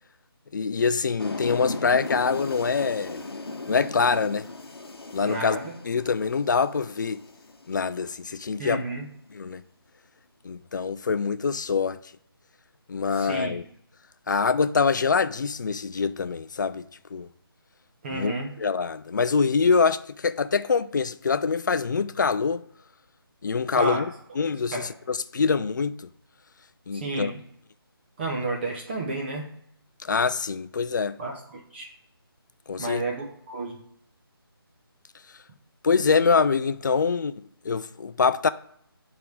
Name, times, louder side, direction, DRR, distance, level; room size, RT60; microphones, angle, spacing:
voice 1, 0.5-3.2 3.7-4.5 5.1-7.2 7.7-8.8 9.3-9.6 10.4-12.0 12.9-13.6 14.3-16.9 17.1-17.3 18.1-22.6 23.4-24.0 24.4-26.0 26.9-27.3 30.0-31.2 32.7-33.0 35.8-37.3 37.6-38.5, left 5 dB, 50° left, 0.4 m, -24 dB
sound 1, 1.2-8.1, left 3 dB, 75° left, 0.9 m, -37 dB
voice 2, 5.2-5.7 8.6-9.1 13.1-13.5 18.0-18.5 23.7-24.0 24.7-24.9 26.9-27.4 28.2-29.5 31.2-31.9 32.8-33.8, right 2 dB, 25° right, 0.9 m, -31 dB
8.8 x 3.7 x 4.7 m
figure-of-eight pair, 155°, 13 cm